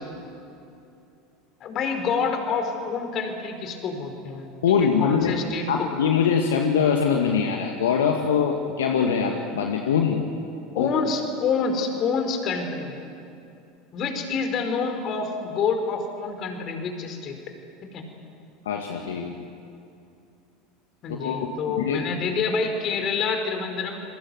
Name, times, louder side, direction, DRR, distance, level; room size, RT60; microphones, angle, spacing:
voice 1, 1.6-6.1 10.7-13.0 13.9-17.4 17.8-18.0 21.0-24.0, left 5 dB, 45° left, 5 dB, 4.9 m, -27 dB
voice 2, 4.6-5.3 5.7-10.2 10.8-10.9 18.7-19.4 21.2-22.0, left 7 dB, 75° left, 2 dB, 2.0 m, -23 dB
28.0 x 23.0 x 8.1 m, 2.6 s
figure-of-eight pair, 75°, 0 cm